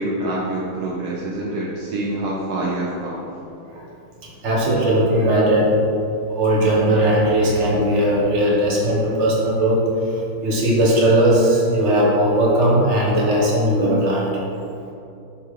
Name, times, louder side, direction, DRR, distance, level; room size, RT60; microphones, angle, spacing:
voice 1, 0.0-3.3, right 1 dB, 70° right, -4 dB, 0.9 m, -26 dB
voice 2, 4.4-5.7 6.3-9.8 10.4-14.3, right 1 dB, 40° right, -4 dB, 1.2 m, -18 dB
7.0 x 3.3 x 4.8 m, 2.7 s
omnidirectional pair, 2.4 m